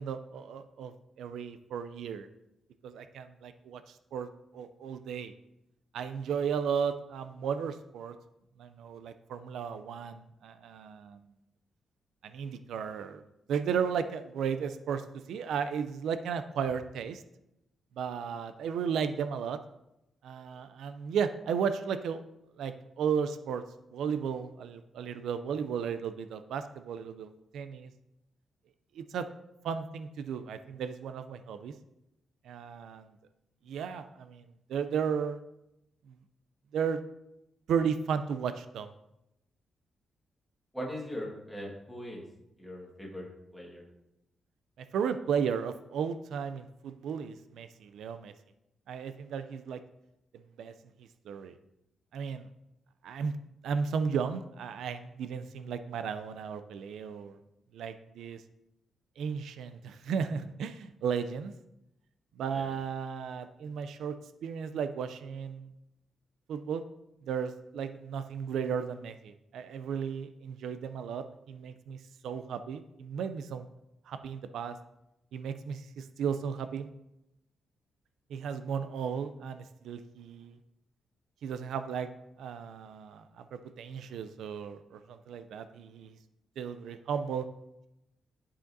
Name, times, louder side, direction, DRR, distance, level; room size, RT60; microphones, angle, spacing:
voice 1, 0.0-2.3 2.8-4.3 4.5-5.3 5.9-8.2 8.6-11.2 12.2-13.2 13.5-17.2 18.0-19.6 20.2-22.2 22.6-23.6 23.9-27.9 28.9-29.3 29.6-31.7 32.4-33.2 33.7-34.4 34.7-35.4 36.7-37.0 37.7-38.9 44.8-48.3 48.9-49.8 50.6-50.7 51.3-51.5 52.1-52.5 53.0-53.3 53.6-57.4 57.7-58.4 59.2-61.5 62.4-64.2 64.4-65.7 66.5-66.8 67.2-72.0 72.2-73.6 74.1-74.8 75.3-76.9 78.3-80.6 81.4-82.1 82.4-86.1 86.6-87.5, right 7 dB, 80° right, 10 dB, 0.4 m, -34 dB
voice 2, 40.7-42.2 42.6-43.3 43.5-43.9 62.5-62.8, equal, ahead, -3 dB, 1.6 m, -40 dB
11.5 x 4.9 x 2.6 m, 0.88 s
wide cardioid pair, 175°, 0 cm